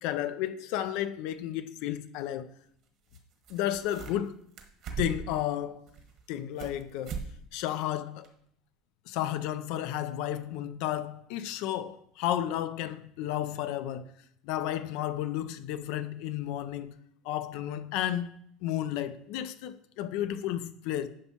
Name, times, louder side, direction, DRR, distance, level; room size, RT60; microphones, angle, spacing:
voice 1, 0.0-2.5 3.5-4.4 5.0-5.8 6.3-7.2 7.5-8.3 9.1-14.1 14.4-17.0 17.2-18.3 18.6-21.1, left 12 dB, 70° left, 0.4 m, -32 dB
sound 1, 1.4-1.5 3.1-3.2 3.4-4.3 4.6-5.4 5.9-6.8 7.0-7.3 7.6-7.7 8.2-8.3, right 5 dB, 55° right, 1.2 m, -38 dB
9.8 x 5.6 x 2.9 m
supercardioid pair, 115°, 0 cm